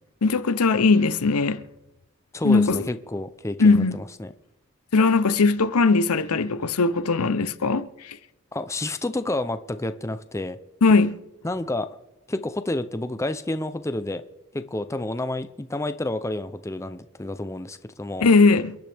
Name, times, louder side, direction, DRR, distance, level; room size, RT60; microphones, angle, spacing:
voice 1, 0.2-1.6 2.4-2.9 3.6-4.0 4.9-8.2 10.8-11.2 18.2-18.8, left 4 dB, 90° left, 0.7 m, -19 dB
voice 2, 2.3-4.3 8.5-10.6 11.4-11.9 12.3-14.2 14.5-18.3, left 1 dB, 15° left, 0.5 m, -29 dB
29.0 x 10.5 x 3.5 m
head